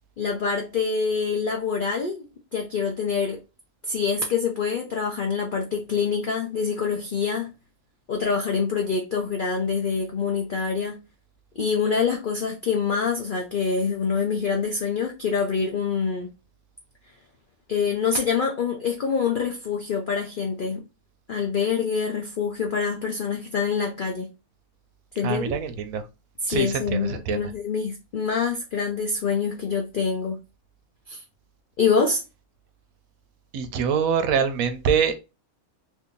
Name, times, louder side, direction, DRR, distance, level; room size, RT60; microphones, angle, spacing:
voice 1, 0.2-2.2 2.5-3.4 3.8-7.5 8.1-11.0 11.6-16.3 17.7-20.8 21.3-24.3 25.2-25.6 26.4-30.4 31.1-31.2 31.8-32.2, left 5 dB, 70° left, 0.5 m, -25 dB
voice 2, 25.2-26.0 26.5-27.4 33.5-35.2, right 7 dB, 75° right, 1.0 m, -24 dB
2.7 x 2.6 x 3.6 m
omnidirectional pair, 1.5 m